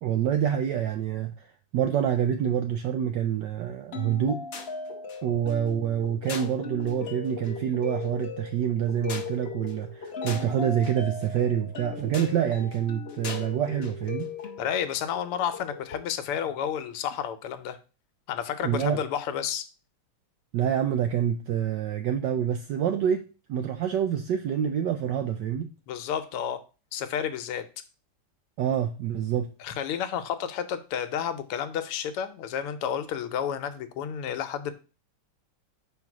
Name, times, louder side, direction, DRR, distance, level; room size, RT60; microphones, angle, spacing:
voice 1, 0.0-1.3 1.7-4.4 5.2-14.3 18.6-19.0 20.5-25.7 28.6-29.5, right 9 dB, 75° right, 1.0 m, -27 dB
sound 1, 3.9-16.1, left 5 dB, 55° left, 0.7 m, -38 dB
voice 2, 14.6-17.8 18.3-19.7 25.9-26.6 26.9-27.6 29.6-34.7, left 8 dB, 85° left, 1.6 m, -31 dB
5.1 x 3.9 x 5.9 m
omnidirectional pair, 2.4 m